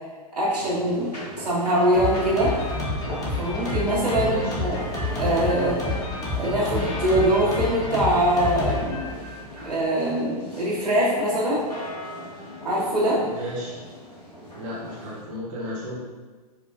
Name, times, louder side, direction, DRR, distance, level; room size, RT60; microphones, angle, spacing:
voice 1, 0.3-2.5 3.4-4.8 5.1-5.8 6.4-9.0 9.6-11.6 12.6-13.2, right 1 dB, 90° right, -9 dB, 1.3 m, -23 dB
sound 1, 0.5-15.2, equal, 85° left, 1.3 m, -38 dB
Drum kit, 1.9-9.7, left 2 dB, 20° left, 0.7 m, -29 dB
voice 2, 4.1-4.6 13.2-13.8 14.5-16.0, equal, 55° right, -6 dB, 1.0 m, -33 dB
4.7 x 2.2 x 2.4 m, 1.3 s
figure-of-eight pair, 105°, 20 cm